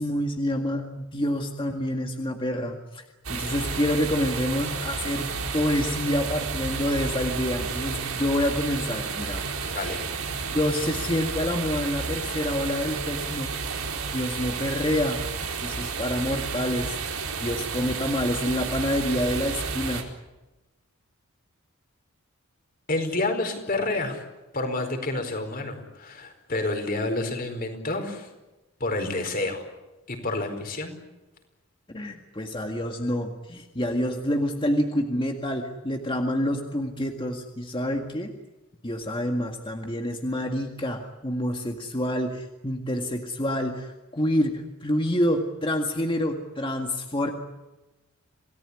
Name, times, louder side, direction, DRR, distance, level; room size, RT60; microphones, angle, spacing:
voice 1, 0.0-3.0 3.3-9.4 10.4-13.5 14.1-15.2 15.6-17.0 17.4-20.1 31.9-38.3 38.8-47.3, left 1 dB, 25° left, 3 dB, 1.9 m, -27 dB
sound 1, 3.2-20.0, right 5 dB, 80° right, 4.6 m, -31 dB
voice 2, 9.7-10.1 22.9-24.2 24.5-28.3 28.8-29.6 30.1-30.9, left 2 dB, 45° left, 6 dB, 4.7 m, -29 dB
27.5 x 18.5 x 9.8 m, 1.1 s
head